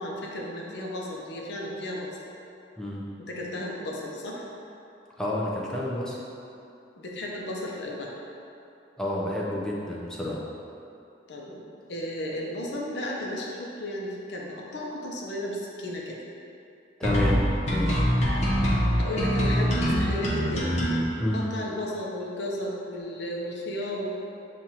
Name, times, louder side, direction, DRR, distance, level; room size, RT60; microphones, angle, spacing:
voice 1, 0.0-2.1 3.2-4.5 7.0-8.1 11.3-11.6 11.9-16.2 19.0-20.8 21.3-24.2, left 1 dB, 70° left, -2 dB, 0.7 m, -34 dB
voice 2, 5.2-6.2 9.0-10.4 17.0-17.4 17.7-18.0 21.2-21.5, left 1 dB, 5° left, -5 dB, 0.5 m, -29 dB
sound 1, 17.0-21.0, equal, 40° left, 0.8 m, -24 dB
7.2 x 2.5 x 2.9 m, 2.8 s
head